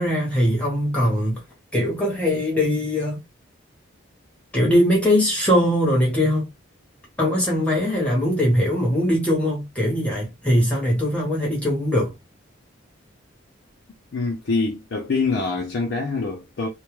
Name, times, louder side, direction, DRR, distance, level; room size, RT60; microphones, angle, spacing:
voice 1, 0.0-1.4 1.7-3.2 4.5-6.5 7.2-12.1, equal, 5° left, 0.8 m, -21 dB
voice 2, 14.1-16.7, left 3 dB, 60° left, 0.4 m, -25 dB
2.2 x 2.1 x 3.0 m
head